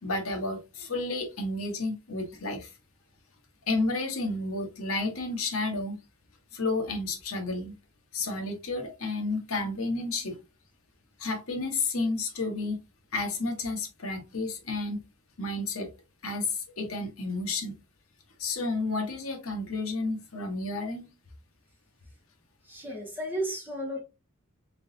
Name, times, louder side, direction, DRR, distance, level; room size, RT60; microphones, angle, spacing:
voice 1, 0.0-2.7 3.7-6.0 6.5-7.7 8.1-10.4 11.2-12.8 13.1-15.0 15.4-15.9 16.2-17.8 18.4-21.1, left 3 dB, 75° left, 1.2 m, -31 dB
voice 2, 22.6-24.0, right 1 dB, 10° right, 1.7 m, -33 dB
3.7 x 3.7 x 2.7 m
head